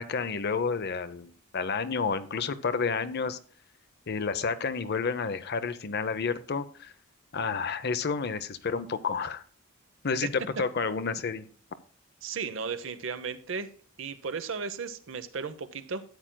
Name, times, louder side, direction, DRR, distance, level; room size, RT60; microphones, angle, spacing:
voice 1, 0.0-3.4 4.1-6.9 7.3-9.4 10.0-11.5, left 5 dB, 50° left, 12 dB, 0.7 m, -30 dB
voice 2, 12.2-13.7 14.0-16.0, right 5 dB, 65° right, 11 dB, 0.8 m, -35 dB
13.0 x 8.9 x 2.2 m, 0.42 s
head